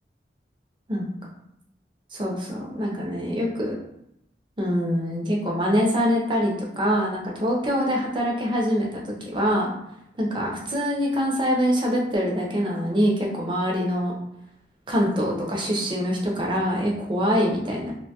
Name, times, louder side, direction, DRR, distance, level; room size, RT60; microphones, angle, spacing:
voice 1, 2.1-3.7 4.6-9.0 9.3-9.7 10.2-14.1 14.9-17.9, equal, 25° right, -2 dB, 0.5 m, -24 dB
2.6 x 2.2 x 2.8 m, 0.79 s
head